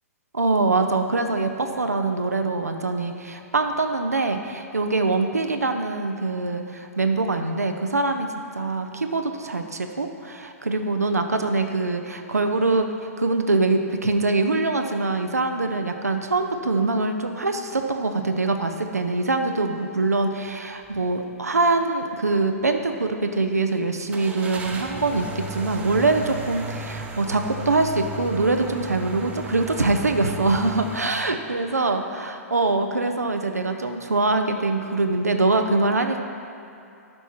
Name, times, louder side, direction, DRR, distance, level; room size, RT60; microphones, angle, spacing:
voice 1, 0.3-36.2, right 3 dB, 85° right, 5 dB, 0.6 m, -24 dB
sound 1, 20.8-21.1 21.5-21.6 24.1-31.0, right 1 dB, 15° right, 0.8 m, -35 dB
12.0 x 4.5 x 4.4 m, 2.7 s
figure-of-eight pair, 110°, 8 cm